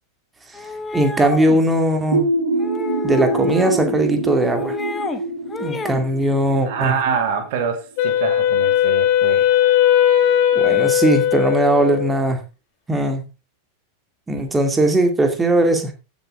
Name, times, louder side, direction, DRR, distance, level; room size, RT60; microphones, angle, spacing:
sound 1, 0.5-1.6 2.6-4.0 4.3-5.2 5.5-6.0, left 4 dB, 15° left, 1.4 m, -30 dB
voice 1, 0.9-2.3 3.0-4.8 5.6-6.9 10.5-12.4 12.9-13.2 14.3-15.9, right 1 dB, 10° right, 2.4 m, -19 dB
sound 2, 2.1-7.7, right 2 dB, 75° right, 3.5 m, -25 dB
voice 2, 6.7-9.8, right 6 dB, 50° right, 2.3 m, -25 dB
Wind instrument woodwind instrument, 8.0-12.3, left 10 dB, 45° left, 3.6 m, -17 dB
15.5 x 7.3 x 3.8 m
figure-of-eight pair, 90°, 0 cm